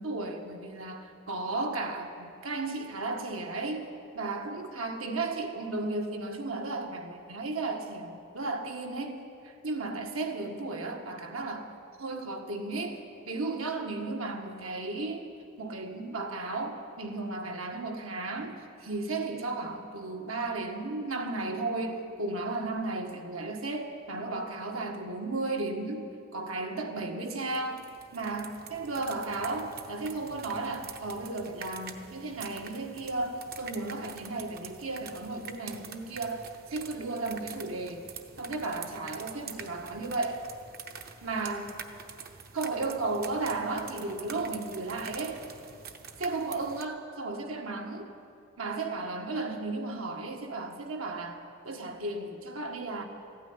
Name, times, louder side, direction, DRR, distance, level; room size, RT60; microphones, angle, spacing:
voice 1, 0.0-3.9 4.1-11.7 12.0-13.0 13.3-15.3 15.6-27.8 28.1-38.1 38.4-40.4 41.2-41.9 42.5-45.4 46.2-48.1 48.6-51.4 51.6-53.0, right 3 dB, 75° right, 3 dB, 1.6 m, -34 dB
sound 1, 27.5-46.9, right 6 dB, 45° right, 0.9 m, -46 dB
14.5 x 9.5 x 9.6 m, 2.4 s
head